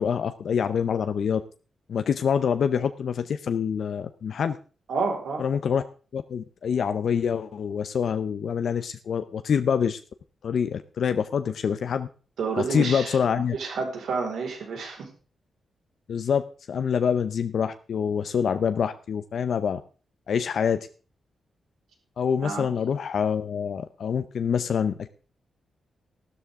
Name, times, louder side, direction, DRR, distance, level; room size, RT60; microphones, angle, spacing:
voice 1, 0.0-1.4 1.9-4.6 5.4-5.8 6.1-10.0 10.4-12.1 12.6-13.6 16.1-19.8 20.3-20.9 22.2-25.1, left 7 dB, 60° left, 9 dB, 0.7 m, -26 dB
voice 2, 4.9-5.4 12.4-13.1 13.5-15.1 22.4-22.7, right 4 dB, 80° right, 2 dB, 4.9 m, -29 dB
14.5 x 12.5 x 3.7 m, 0.37 s
wide cardioid pair, 160°, 0 cm